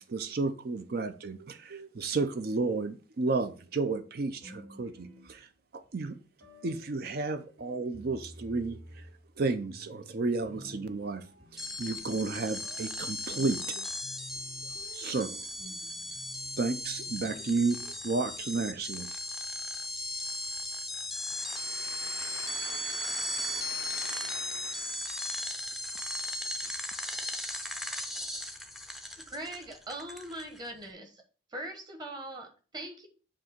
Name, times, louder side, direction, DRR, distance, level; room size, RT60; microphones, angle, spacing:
voice 1, 0.0-5.5 5.7-6.2 6.6-9.1 9.4-11.3 11.8-13.8 14.9-15.3 16.6-19.1, right 3 dB, 50° right, 0.5 m, -32 dB
sound 1, 4.4-5.9 6.4-18.6, equal, 65° right, 2.7 m, -53 dB
sound 2, 11.6-30.7, left 1 dB, ahead, 0.5 m, -37 dB
voice 2, 21.3-25.2 26.6-26.8, left 7 dB, 55° left, 0.4 m, -45 dB
voice 3, 29.3-31.2 31.5-33.1, right 1 dB, 20° right, 1.2 m, -41 dB
7.5 x 2.8 x 5.9 m
head